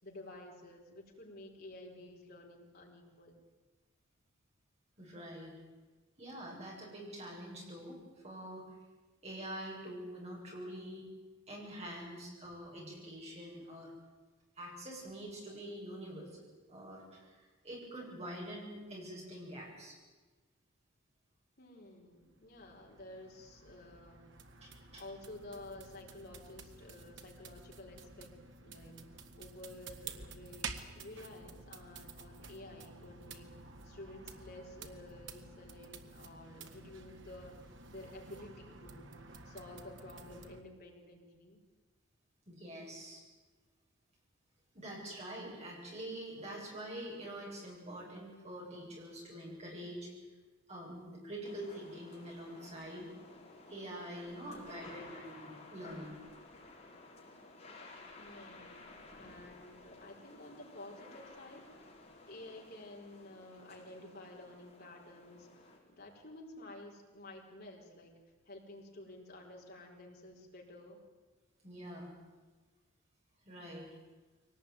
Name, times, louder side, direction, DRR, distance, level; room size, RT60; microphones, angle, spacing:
voice 1, 0.0-3.4 11.8-12.1 21.6-24.3 25.0-28.3 28.6-41.6 54.5-55.1 58.2-61.7 62.2-68.2 68.4-71.0, left 1 dB, 50° left, -1 dB, 4.9 m, -52 dB
voice 2, 5.0-5.5 6.2-8.0 8.2-8.6 9.2-11.0 11.5-13.9 14.6-19.9 24.6-25.0 42.5-43.2 44.7-50.1 50.7-53.1 53.7-56.2 71.6-72.1 73.4-73.9, right 1 dB, 30° right, -2 dB, 7.9 m, -45 dB
sound 1, 22.1-40.6, right 4 dB, 60° right, 1.7 m, -51 dB
sound 2, 51.4-65.8, left 2 dB, 35° left, 5.3 m, -55 dB
23.0 x 18.5 x 9.4 m, 1.3 s
head